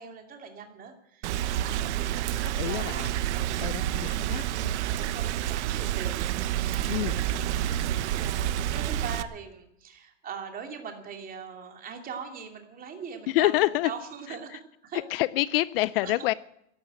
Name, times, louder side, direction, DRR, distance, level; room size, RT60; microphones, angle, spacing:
voice 1, 0.0-4.2 4.5-13.6 13.8-15.0 16.0-16.1, right 6 dB, 25° right, 4 dB, 2.9 m, -42 dB
Rain, 1.2-9.2, right 12 dB, 65° right, 1.0 m, -29 dB
voice 2, 2.4-3.1 3.6-4.5 6.9-7.1 13.3-13.9 14.9-16.3, left 18 dB, 50° left, 19 dB, 0.5 m, -27 dB
13.0 x 12.0 x 9.0 m, 0.77 s
supercardioid pair, 140°, 37 cm